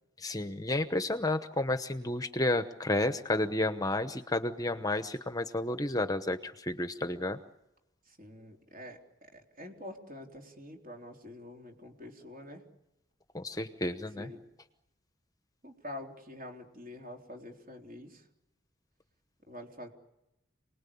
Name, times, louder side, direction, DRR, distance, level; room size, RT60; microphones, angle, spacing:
voice 1, 0.2-7.4 13.3-14.3, left 2 dB, 20° left, 9 dB, 1.0 m, -31 dB
voice 2, 8.1-12.6 14.2-14.4 15.6-18.2 19.5-19.9, left 1 dB, 45° right, 2 dB, 3.7 m, -46 dB
28.5 x 20.0 x 8.6 m, 0.90 s
head